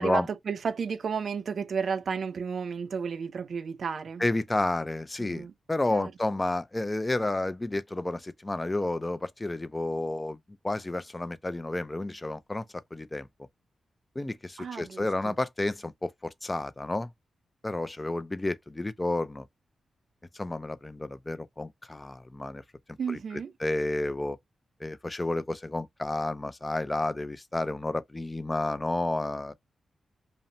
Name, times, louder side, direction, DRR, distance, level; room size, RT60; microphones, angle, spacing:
voice 1, 0.0-4.2 5.2-5.5 5.9-6.1 14.6-15.3 23.0-23.5, right 6 dB, 60° right, 0.4 m, -32 dB
voice 2, 4.2-10.4 10.6-12.6 12.9-13.3 14.2-17.1 17.6-19.5 20.3-22.6 23.1-24.4 24.8-29.5, left 2 dB, 20° left, 0.3 m, -31 dB
2.8 x 2.0 x 2.6 m
cardioid pair, 85°, 0 cm